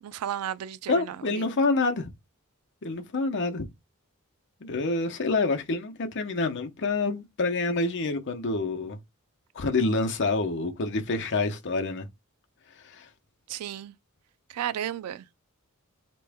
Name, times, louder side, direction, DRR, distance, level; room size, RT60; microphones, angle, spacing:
voice 1, 0.0-1.6 13.5-13.9 14.5-15.3, right 10 dB, 85° right, 0.3 m, -34 dB
voice 2, 0.9-2.1 2.8-3.7 4.6-9.0 9.5-12.1 12.8-13.1, left 3 dB, 55° left, 0.7 m, -27 dB
4.2 x 3.0 x 3.5 m
head